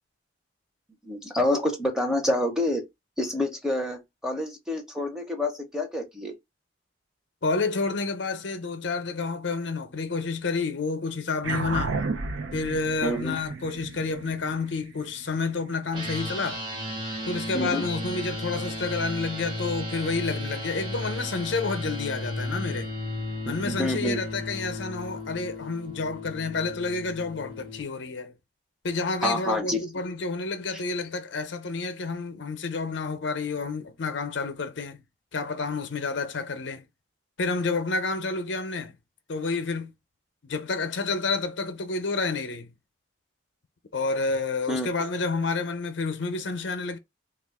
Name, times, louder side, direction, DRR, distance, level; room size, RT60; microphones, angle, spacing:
voice 1, 1.0-2.8 3.2-6.3 13.0-13.4 17.5-17.8 23.5-24.2 29.2-29.8 30.7-30.8 44.7-44.9, left 1 dB, 5° right, 0.7 m, -27 dB
voice 2, 7.4-12.0 12.5-16.6 17.3-22.9 23.4-28.3 28.8-35.0 35.3-36.9 37.4-39.0 39.3-39.9 40.4-42.7 43.9-47.0, left 4 dB, 65° left, 0.6 m, -29 dB
sound 1, 11.4-16.2, right 4 dB, 80° right, 0.6 m, -33 dB
sound 2, 15.9-27.8, left 1 dB, 25° right, 1.0 m, -34 dB
3.5 x 2.3 x 3.5 m
head